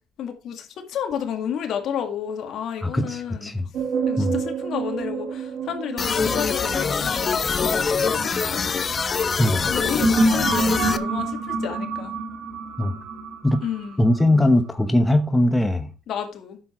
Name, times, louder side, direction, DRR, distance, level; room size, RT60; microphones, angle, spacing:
voice 1, 0.2-3.5 4.1-8.9 9.7-12.2 13.6-14.0 16.1-16.6, left 8 dB, 60° left, 2.1 m, -31 dB
voice 2, 2.8-3.7 4.2-4.4 9.4-9.6 12.8-12.9 13.4-13.6 14.0-15.9, left 1 dB, 10° left, 1.0 m, -20 dB
sound 1, 3.7-9.0 9.6-14.6, right 3 dB, 60° right, 2.1 m, -27 dB
sound 2, 6.0-11.0, left 5 dB, 35° left, 0.7 m, -24 dB
9.6 x 7.3 x 4.5 m
cardioid pair, 110°, 0 cm